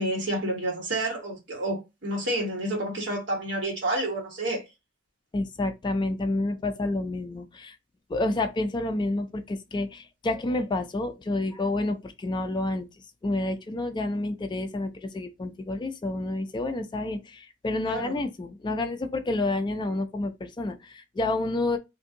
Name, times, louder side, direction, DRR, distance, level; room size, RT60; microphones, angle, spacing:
voice 1, 0.0-4.6 17.8-18.2, right 1 dB, 60° right, 1.4 m, -29 dB
voice 2, 5.3-7.8 8.1-12.9 13.2-21.8, left 2 dB, 20° left, 0.3 m, -29 dB
2.6 x 2.6 x 3.6 m
head